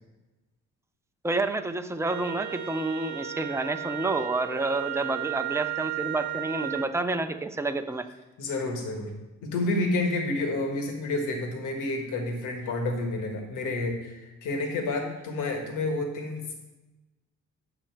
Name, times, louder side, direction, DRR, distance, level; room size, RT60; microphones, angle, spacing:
voice 1, 1.2-8.1, right 2 dB, 10° right, 7 dB, 0.6 m, -29 dB
Wind instrument woodwind instrument, 2.0-6.9, right 12 dB, 70° right, 0.9 m, -34 dB
voice 2, 8.4-9.1 9.4-16.5, left 2 dB, 85° left, 3 dB, 1.5 m, -29 dB
8.9 x 6.3 x 4.6 m, 1.1 s
cardioid pair, 90°, 30 cm